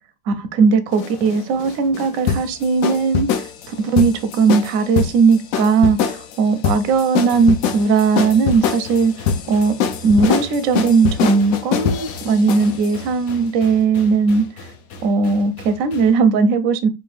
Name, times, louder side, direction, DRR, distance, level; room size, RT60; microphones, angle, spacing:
voice 1, 0.3-9.1 9.5-9.7 10.0-14.5 15.0-16.9, right 4 dB, 65° right, 0.8 m, -17 dB
sound 1, 0.9-12.9, left 7 dB, 80° left, 0.7 m, -23 dB
sound 2, 7.3-16.2, left 3 dB, 60° left, 1.0 m, -39 dB
4.4 x 2.6 x 3.2 m
omnidirectional pair, 2.0 m